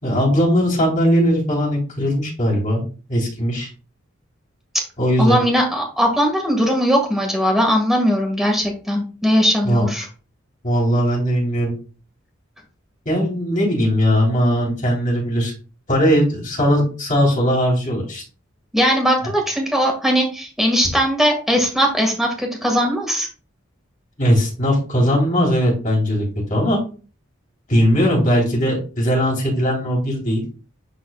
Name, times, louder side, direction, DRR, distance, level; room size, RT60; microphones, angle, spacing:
voice 1, 0.0-2.8 3.1-3.7 5.0-5.4 9.6-9.8 10.6-11.7 13.0-15.5 15.9-18.2 24.2-26.8 27.7-30.4, equal, 40° left, -3 dB, 3.3 m, -19 dB
voice 2, 5.2-10.1 18.7-23.3, equal, ahead, 1 dB, 1.7 m, -19 dB
10.5 x 4.1 x 2.3 m, 0.36 s
head